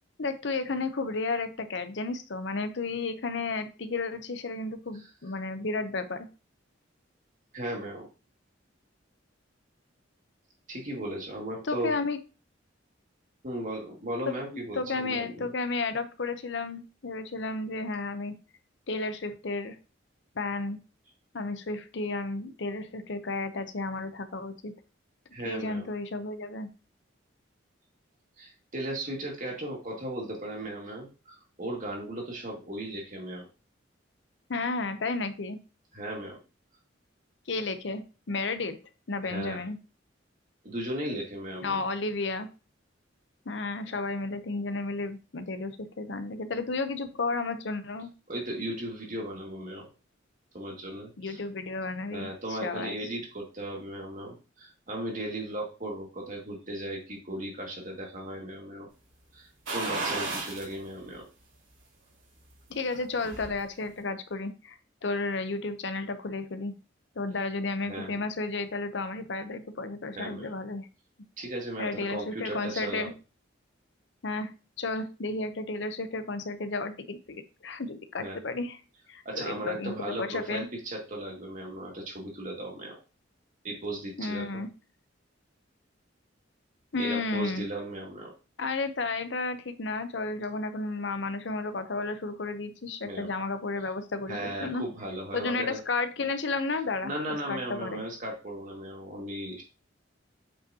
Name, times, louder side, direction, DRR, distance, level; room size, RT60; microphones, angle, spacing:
voice 1, 0.2-6.3 11.6-12.2 14.3-18.3 18.9-19.8 20.4-20.8 21.3-24.7 25.4-26.7 34.5-35.6 37.5-38.7 39.1-39.8 41.6-42.5 43.5-48.1 51.2-53.0 62.7-66.7 67.2-70.9 71.8-73.1 74.2-74.5 74.8-77.4 77.6-78.8 79.1-80.7 84.2-84.7 86.9-87.7 88.6-94.8 95.3-97.1 97.5-98.0, left 3 dB, 65° left, 10 dB, 0.8 m, -32 dB
voice 2, 7.5-8.1 10.7-11.9 13.4-15.5 25.3-25.9 28.4-33.5 35.9-36.4 39.2-39.6 40.6-41.8 48.3-49.8 50.5-51.4 52.1-58.9 59.3-61.3 67.8-68.2 70.1-70.5 71.4-73.1 78.2-78.4 79.3-83.0 83.6-84.6 87.0-88.3 93.0-93.3 94.3-95.8 97.0-99.6, right 1 dB, 45° right, 0 dB, 2.2 m, -36 dB
sound 1, 59.7-60.7 61.1-61.2 62.7-63.5 63.9-64.0, right 3 dB, 90° right, 3.2 m, -33 dB
8.0 x 5.2 x 2.8 m, 0.33 s
head